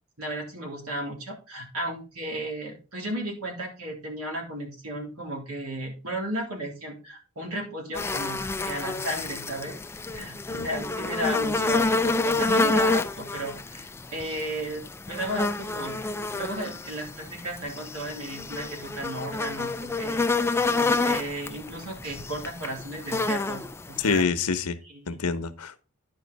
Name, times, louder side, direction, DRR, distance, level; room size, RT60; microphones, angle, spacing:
voice 1, 0.2-9.7 10.1-24.3 24.9-25.2, right 1 dB, 75° right, 3.4 m, -34 dB
sound 1, 7.9-24.2, left 3 dB, 10° left, 0.3 m, -28 dB
voice 2, 24.0-24.8 25.1-25.8, left 4 dB, 85° left, 0.9 m, -26 dB
11.0 x 5.4 x 4.1 m
head